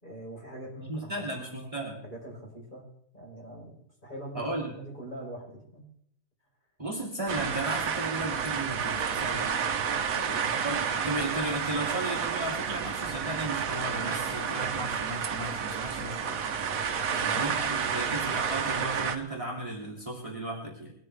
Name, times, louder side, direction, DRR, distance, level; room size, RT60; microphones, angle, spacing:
voice 1, 0.0-1.7 2.0-2.8 3.1-5.8 10.1-10.6 17.1-18.1, right 1 dB, 30° left, -3 dB, 4.7 m, -43 dB
voice 2, 0.8-2.0 4.3-4.7 6.8-9.7 10.5-16.4 17.3-20.9, right 1 dB, 20° right, -1 dB, 2.8 m, -35 dB
sound 1, 7.3-19.2, right 7 dB, 65° right, 1.3 m, -30 dB
21.5 x 13.0 x 3.4 m, 0.68 s
omnidirectional pair, 1.7 m